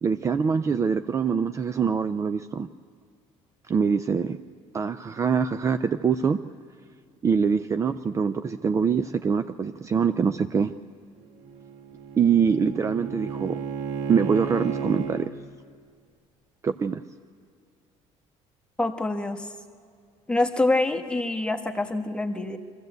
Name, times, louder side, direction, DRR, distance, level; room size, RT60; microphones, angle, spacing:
voice 1, 0.0-2.7 3.7-4.4 4.7-6.4 7.2-10.7 12.2-13.6 14.1-15.3 16.6-17.0, right 6 dB, 25° right, 10 dB, 0.4 m, -24 dB
Bowed string instrument, 11.2-15.3, right 6 dB, 85° right, 1.5 m, -33 dB
voice 2, 18.8-19.5 20.3-22.6, left 2 dB, 10° left, 5 dB, 1.2 m, -25 dB
24.0 x 15.0 x 8.0 m, 2.2 s
cardioid pair, 140°, 12 cm